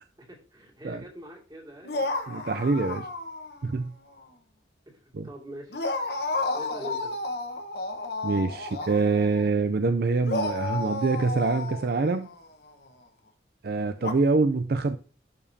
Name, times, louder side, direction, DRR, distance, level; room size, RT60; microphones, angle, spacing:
voice 1, 0.2-2.0 4.9-5.0 5.2-5.8 6.5-7.2, equal, 25° right, -1 dB, 2.4 m, -43 dB
sound 1, 1.8-3.8 4.1-4.2 5.7-9.6 10.3-12.7 14.0-14.1, left 2 dB, 60° left, 1.2 m, -32 dB
voice 2, 2.3-3.1 3.6-3.9 5.1-5.3 8.2-12.3 13.6-15.0, right 3 dB, 55° right, 9 dB, 0.4 m, -25 dB
12.0 x 5.0 x 2.7 m, 0.39 s
head